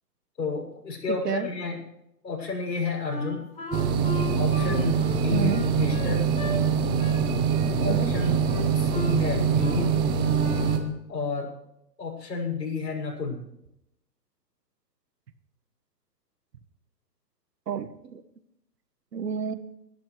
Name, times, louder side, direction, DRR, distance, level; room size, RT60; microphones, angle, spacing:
voice 1, 0.4-1.8 2.2-3.5 4.3-6.3 7.8-8.4 8.7-10.0 11.1-11.5 12.0-13.4, left 4 dB, 80° left, 0 dB, 6.7 m, -31 dB
Wind instrument woodwind instrument, 3.1-6.6 7.0-7.2 7.5-8.2 8.4-9.2 9.6-9.8 10.1-10.9, left 2 dB, 10° left, 6.1 m, -36 dB
sound 1, 3.7-10.8, right 6 dB, 10° right, 0.5 m, -24 dB
voice 2, 5.3-5.6 7.9-8.1 17.7-18.2 19.1-19.5, right 7 dB, 70° right, 11 dB, 1.6 m, -29 dB
22.5 x 13.0 x 3.2 m, 0.80 s
hypercardioid pair, 135°, 50 cm